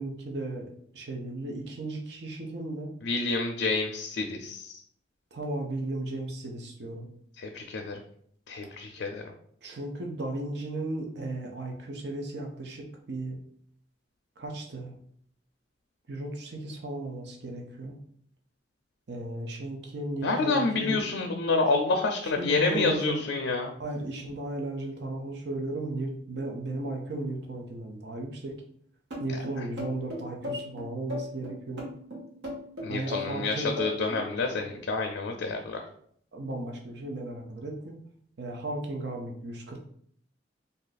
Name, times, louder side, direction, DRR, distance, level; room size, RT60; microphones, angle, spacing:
voice 1, 0.0-2.9 5.3-7.1 9.6-13.4 14.4-15.0 16.1-18.0 19.1-21.0 22.2-23.2 23.8-28.6 29.2-31.9 32.9-33.7 36.3-37.9 38.4-39.8, right 2 dB, 65° right, 1 dB, 0.6 m, -35 dB
voice 2, 3.0-4.8 7.4-8.0 8.5-9.2 20.2-23.7 32.8-35.8, left 3 dB, 80° left, 3 dB, 0.4 m, -28 dB
sound 1, 29.1-34.3, left 1 dB, 90° right, 1.1 m, -36 dB
2.7 x 2.5 x 3.9 m, 0.64 s
head